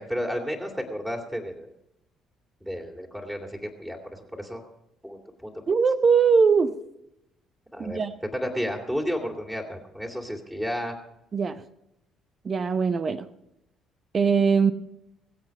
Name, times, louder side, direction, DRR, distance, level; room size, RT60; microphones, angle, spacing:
voice 1, 0.1-1.7 2.6-4.6 5.0-5.5 7.7-11.0, equal, 10° right, 1 dB, 3.0 m, -32 dB
voice 2, 5.7-6.7 7.8-8.1 11.3-11.6 12.4-13.3 14.1-14.7, right 5 dB, 35° right, 13 dB, 0.8 m, -21 dB
22.5 x 8.0 x 5.4 m, 0.83 s
figure-of-eight pair, 45°, 0 cm